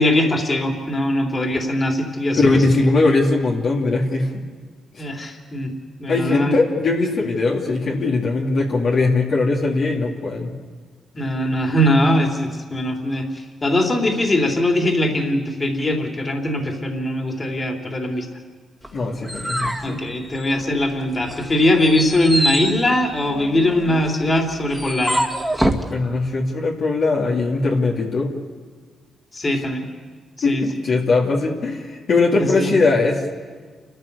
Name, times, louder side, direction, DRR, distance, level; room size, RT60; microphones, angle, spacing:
voice 1, 0.0-2.6 5.0-5.7 6.0-6.5 11.1-18.3 19.8-25.2 29.3-29.8 30.4-30.6 32.4-32.7, left 1 dB, 30° left, 2 dB, 3.3 m, -21 dB
voice 2, 2.4-4.3 4.9-5.0 6.1-10.5 18.9-20.0 25.9-28.3 30.4-33.2, left 3 dB, 65° left, -2 dB, 2.9 m, -20 dB
sound 1, 18.8-20.8 21.2-25.9, right 1 dB, ahead, 2.2 m, -26 dB
29.0 x 13.5 x 6.9 m, 1.5 s
cardioid pair, 65°, 0 cm